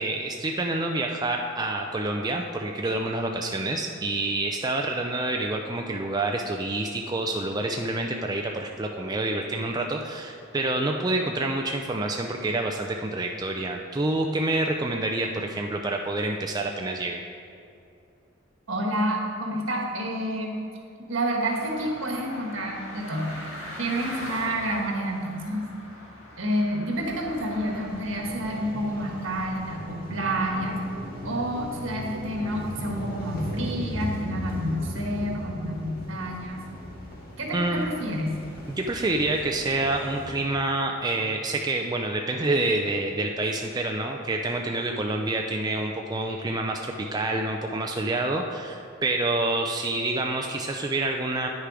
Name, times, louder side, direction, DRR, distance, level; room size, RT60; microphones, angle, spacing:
voice 1, 0.0-17.2 37.5-37.8 38.7-51.5, right 2 dB, 20° right, 2 dB, 0.4 m, -27 dB
voice 2, 18.7-20.5 21.1-23.3 23.8-25.7 26.4-30.8 31.2-36.6 37.4-38.4, equal, 70° right, 0 dB, 1.4 m, -29 dB
sound 1, 21.4-27.9, left 1 dB, 80° left, 2.3 m, -41 dB
sound 2, 26.9-40.4, equal, 50° left, 1.8 m, -38 dB
9.5 x 6.7 x 4.9 m, 2.6 s
head